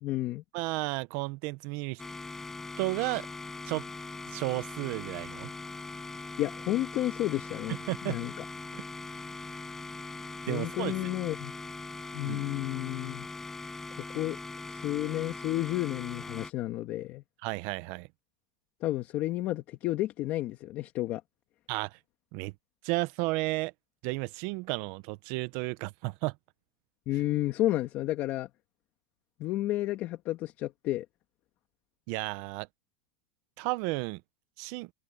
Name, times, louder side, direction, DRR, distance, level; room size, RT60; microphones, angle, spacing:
voice 1, 0.0-0.4 6.4-7.8 8.0-8.3 10.5-11.5 12.1-13.3 14.1-14.4 14.7-17.2 18.8-21.2 27.1-28.5 29.4-31.1, left 15 dB, 35° left, 2.0 m, -31 dB
voice 2, 0.5-2.0 2.8-3.3 3.7-3.8 4.3-5.5 7.9-8.3 8.7-8.8 10.5-10.9 12.2-12.5 17.4-18.1 21.7-22.0 22.3-22.5 22.8-23.7 24.0-26.3 32.1-32.7 33.6-34.2 34.6-34.9, right 23 dB, 45° right, 0.6 m, -33 dB
sound 1, 2.0-16.5, left 3 dB, 10° left, 4.5 m, -41 dB
supercardioid pair, 160°, 5 cm